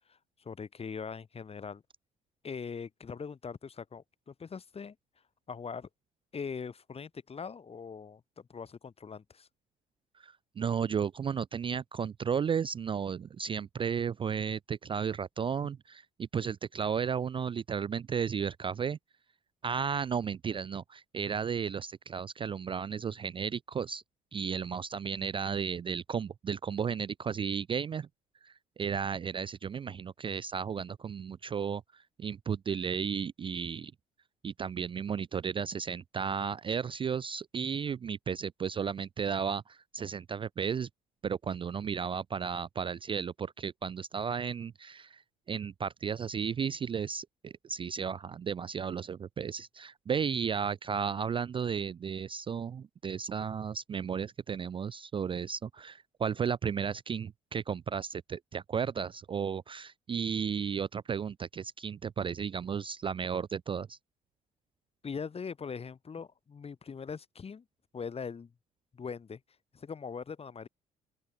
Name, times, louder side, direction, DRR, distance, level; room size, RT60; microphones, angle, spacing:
voice 1, 0.1-1.8 2.4-4.9 5.5-5.9 6.3-9.5 65.0-67.6 67.9-68.5 68.9-69.4 69.7-70.7, left 6 dB, 35° left, 1.3 m, -41 dB
voice 2, 10.2-19.0 19.6-24.0 24.3-28.1 28.4-33.9 34.4-40.9 41.2-45.2 45.5-64.0, right 7 dB, 30° right, 0.4 m, -34 dB
open air
hypercardioid pair, 55°, 18 cm